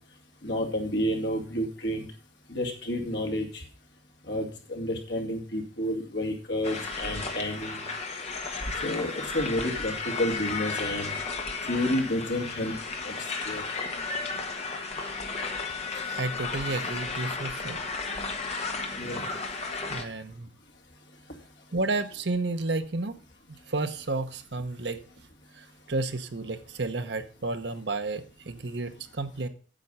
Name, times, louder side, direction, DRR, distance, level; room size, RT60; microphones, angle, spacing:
voice 1, 0.4-2.1 2.5-3.6 4.3-7.8 8.8-11.1 11.6-12.7 13.0-13.1 13.5-13.6 19.0-19.3, left 1 dB, 70° left, 3 dB, 2.3 m, -30 dB
sound 1, 6.6-20.0, left 4 dB, 35° left, 1.5 m, -34 dB
voice 2, 16.1-17.8 19.9-20.5 21.7-23.2 23.7-25.0 25.6-29.5, right 3 dB, 65° right, 9 dB, 0.9 m, -31 dB
9.0 x 7.8 x 5.5 m, 0.39 s
head